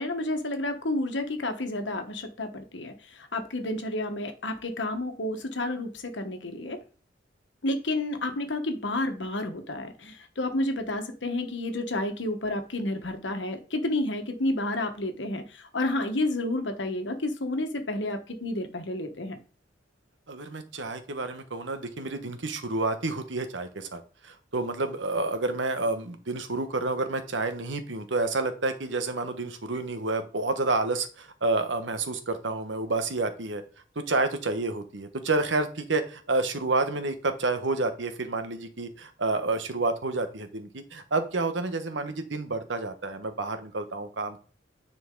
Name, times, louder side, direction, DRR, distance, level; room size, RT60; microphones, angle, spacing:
voice 1, 0.0-6.8 7.6-19.4, left 1 dB, 80° left, 6 dB, 1.4 m, -30 dB
voice 2, 20.3-33.6 33.9-44.4, right 3 dB, 85° right, 9 dB, 1.2 m, -29 dB
9.7 x 4.5 x 3.8 m, 0.39 s
head